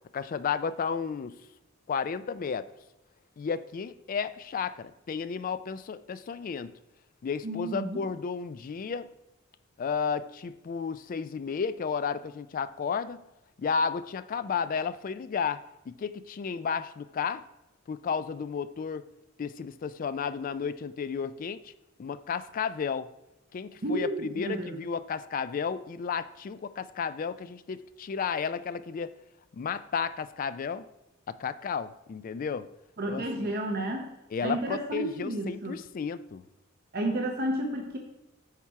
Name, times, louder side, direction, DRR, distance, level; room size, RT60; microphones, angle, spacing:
voice 1, 0.1-1.4 1.9-2.7 3.4-6.7 7.2-9.1 9.8-13.2 13.6-17.4 17.9-19.1 19.4-21.7 22.0-23.1 23.5-29.1 29.5-30.9 31.3-32.7 33.1-33.5 34.3-36.4, left 6 dB, 40° left, 14 dB, 0.3 m, -33 dB
voice 2, 7.4-8.0 23.8-24.8 33.0-34.1 34.4-35.8 36.9-38.0, right 1 dB, 45° right, 1 dB, 0.8 m, -31 dB
8.5 x 4.4 x 4.6 m, 0.92 s
head